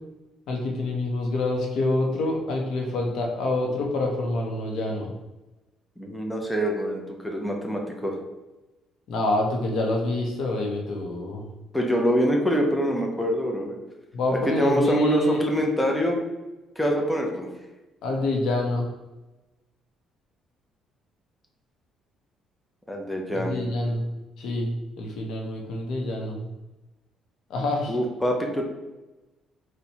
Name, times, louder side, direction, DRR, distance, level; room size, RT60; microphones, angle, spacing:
voice 1, 0.5-5.1 9.1-11.5 14.1-15.4 18.0-18.9 23.3-24.1 24.4-26.5 27.5-27.9, left 2 dB, 70° left, 1 dB, 0.6 m, -26 dB
voice 2, 6.0-8.2 11.7-13.8 14.5-16.2 16.8-17.5 22.9-23.6 27.9-28.6, equal, 5° left, 0 dB, 0.5 m, -25 dB
4.2 x 2.1 x 2.8 m, 1.1 s
cardioid pair, 130°, 0 cm